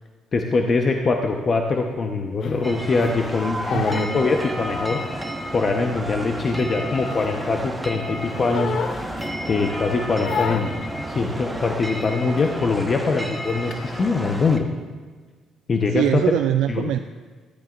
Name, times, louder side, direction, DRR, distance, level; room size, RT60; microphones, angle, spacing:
voice 1, 0.3-5.0 5.5-8.8 9.5-14.7 15.7-16.2 16.7-16.9, left 4 dB, 45° left, 3 dB, 1.0 m, -23 dB
Crying sobbing, 2.4-5.1 5.4-7.7 8.0-9.7 10.2-12.1 12.4-12.7 13.0-14.6, left 6 dB, 60° left, 0.6 m, -33 dB
sound 1, 2.6-14.6, right 1 dB, 5° right, 1.4 m, -31 dB
voice 2, 3.7-4.3 15.9-17.0, right 12 dB, 80° right, 8 dB, 0.3 m, -23 dB
16.5 x 13.5 x 2.6 m, 1.4 s
supercardioid pair, 75°, 0 cm